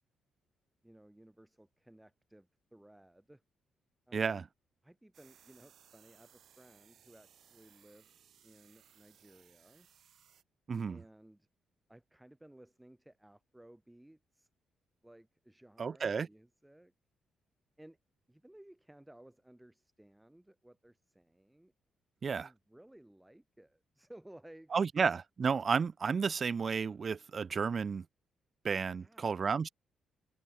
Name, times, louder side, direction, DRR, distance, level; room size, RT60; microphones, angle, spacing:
voice 1, 0.8-3.4 4.1-4.5 4.8-9.9 10.9-11.5 11.9-14.5 15.0-16.9 17.8-18.0 18.3-21.7 22.4-25.1 29.0-29.4, right 1 dB, 5° right, 3.5 m, -58 dB
voice 2, 4.1-4.5 10.7-11.0 15.8-16.3 22.2-22.5 24.7-28.0 28.6-29.7, right 5 dB, 40° right, 0.6 m, -32 dB
sound 1, 5.1-10.4, right 9 dB, 65° right, 4.6 m, -64 dB
cardioid pair, 105°, 0 cm